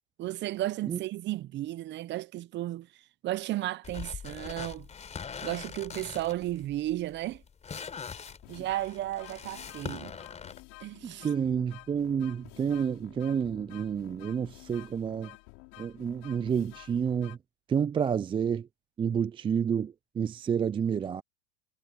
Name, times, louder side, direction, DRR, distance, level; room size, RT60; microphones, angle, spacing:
voice 1, 0.2-2.9 3.2-4.9 5.4-7.4 8.5-10.2 10.8-11.3, right 15 dB, 35° right, 1.0 m, -34 dB
sound 1, 3.8-10.6, left 6 dB, 20° left, 4.5 m, -42 dB
sound 2, 7.7-7.8 8.3-17.4, left 33 dB, 60° left, 6.8 m, -52 dB
voice 2, 11.0-15.3 15.8-17.4 17.7-18.7 19.0-21.2, right 7 dB, 15° right, 0.5 m, -29 dB
hypercardioid pair, 100°, 30 cm